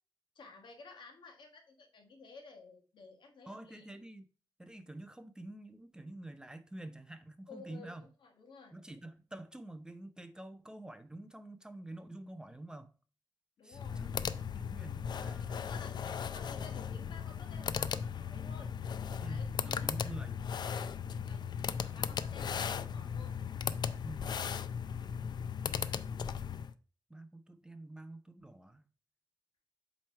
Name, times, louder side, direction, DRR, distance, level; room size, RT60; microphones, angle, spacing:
voice 1, 0.3-3.9 7.5-8.7 12.5-12.6 13.6-14.1 15.5-18.7 19.3-19.5 19.8-20.1 20.6-20.9 21.2-23.3, left 4 dB, 90° left, 1.5 m, -54 dB
voice 2, 3.5-4.3 4.6-8.1 8.7-12.9 13.6-14.2 14.5-15.7 16.7-16.9 19.2-20.4 24.0-24.3 25.8-26.4 27.1-28.8, right 1 dB, 10° right, 0.5 m, -48 dB
sound 1, 13.7-26.7, left 7 dB, 65° left, 0.4 m, -37 dB
7.9 x 3.2 x 4.3 m
wide cardioid pair, 120°, 8 cm